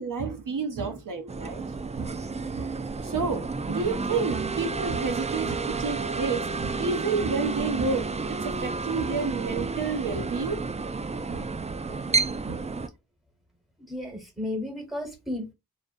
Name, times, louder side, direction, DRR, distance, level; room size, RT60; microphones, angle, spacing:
voice 1, 0.0-1.6 2.0-2.2 2.5-2.7 3.0-10.6 11.3-11.5 11.9-12.1 12.5-12.7, right 4 dB, 60° right, 0.7 m, -30 dB
sound 1, 1.3-12.9, right 4 dB, 20° right, 0.3 m, -31 dB
voice 2, 13.9-15.5, left 1 dB, ahead, 1.3 m, -33 dB
2.4 x 2.0 x 2.5 m
cardioid pair, 45°, 37 cm